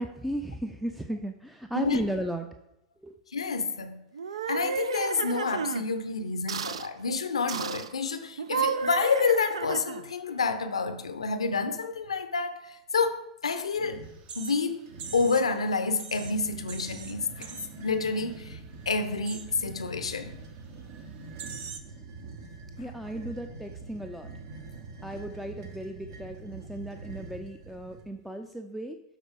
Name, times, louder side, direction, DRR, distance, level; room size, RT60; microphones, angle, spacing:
voice 1, 0.0-2.5 3.0-3.1 22.8-24.3 25.0-29.0, equal, ahead, 0.4 m, -35 dB
voice 2, 3.3-4.0 4.5-14.1 14.4-14.9 15.1-20.4, left 4 dB, 80° left, 0.5 m, -29 dB
sound 1, 4.1-5.8 6.5-6.9 7.5-7.9 8.4-10.1, right 7 dB, 75° right, 0.3 m, -32 dB
sound 2, 13.7-14.3 14.9-15.5 16.1-28.1, right 3 dB, 60° right, 1.0 m, -45 dB
sound 3, 14.1-15.6 15.9-17.9 18.2-18.6 18.8-19.6 20.2-20.4 20.9-21.0 21.4-21.8, right 6 dB, 35° right, 0.7 m, -43 dB
12.0 x 4.1 x 3.4 m
figure-of-eight pair, 90°, 3 cm